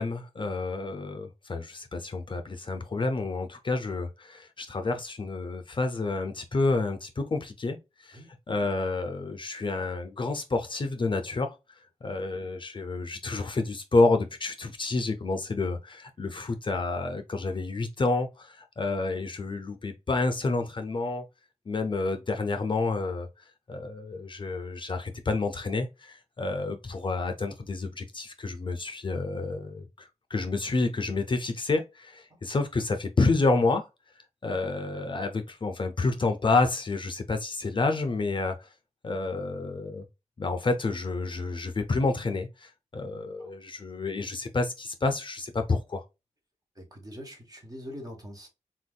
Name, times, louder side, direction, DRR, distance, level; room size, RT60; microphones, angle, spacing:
voice 1, 0.0-7.8 8.0-8.2 8.5-11.5 12.0-21.2 21.7-23.3 23.7-33.9 34.4-38.7 39.0-40.1 40.4-46.0, left 3 dB, 40° left, 0.5 m, -29 dB
voice 2, 46.8-48.5, equal, 30° right, 1.4 m, -43 dB
3.9 x 2.6 x 2.2 m
wide cardioid pair, 90°, 12 cm